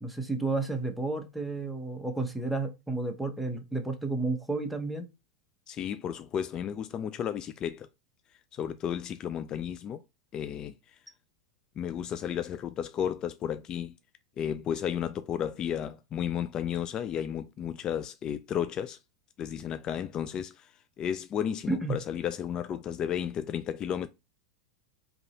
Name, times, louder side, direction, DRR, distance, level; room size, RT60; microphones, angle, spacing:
voice 1, 0.0-5.1 21.7-21.9, right 3 dB, ahead, 0.8 m, -31 dB
voice 2, 5.7-7.9 8.5-10.0 10.3-10.7 11.8-13.9 14.4-19.0 19.4-24.1, left 9 dB, 30° left, 0.3 m, -33 dB
3.7 x 2.9 x 4.1 m
figure-of-eight pair, 90°, 2 cm